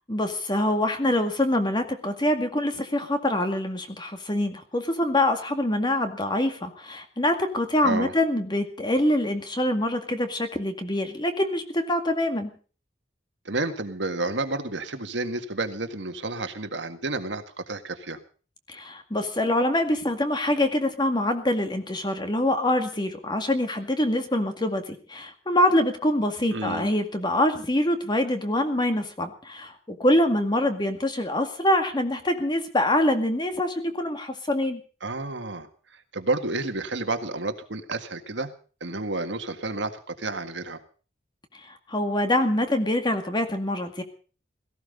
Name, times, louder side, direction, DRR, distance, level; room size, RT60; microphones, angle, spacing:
voice 1, 0.1-12.5 18.7-34.8 41.9-44.0, left 1 dB, 25° left, 7 dB, 2.1 m, -25 dB
voice 2, 7.8-8.1 13.5-18.2 26.5-26.9 35.0-35.7 36.1-38.5 38.8-40.8, right 2 dB, 70° right, 7 dB, 1.9 m, -30 dB
17.5 x 15.5 x 5.4 m, 0.40 s
head